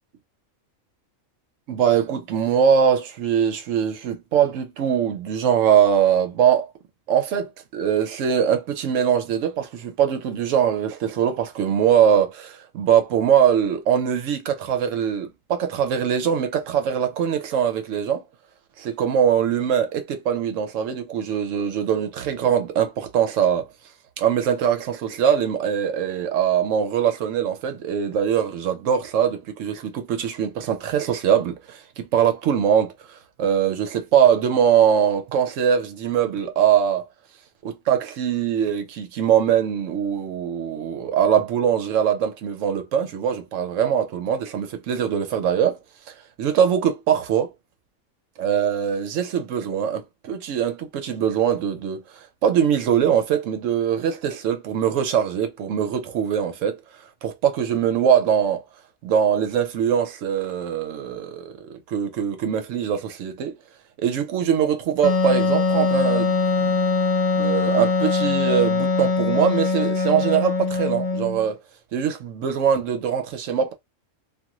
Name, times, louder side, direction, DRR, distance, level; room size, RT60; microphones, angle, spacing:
voice 1, 1.7-6.7 7.1-18.2 18.8-23.7 24.2-37.1 37.6-45.8 46.1-47.5 48.4-56.8 57.2-58.6 59.0-63.6 64.0-66.8 67.3-71.6 71.9-73.7, right 8 dB, 75° right, 1.0 m, -22 dB
Wind instrument woodwind instrument, 65.0-71.5, left 4 dB, 75° left, 0.3 m, -22 dB
2.5 x 2.5 x 2.9 m
omnidirectional pair, 1.4 m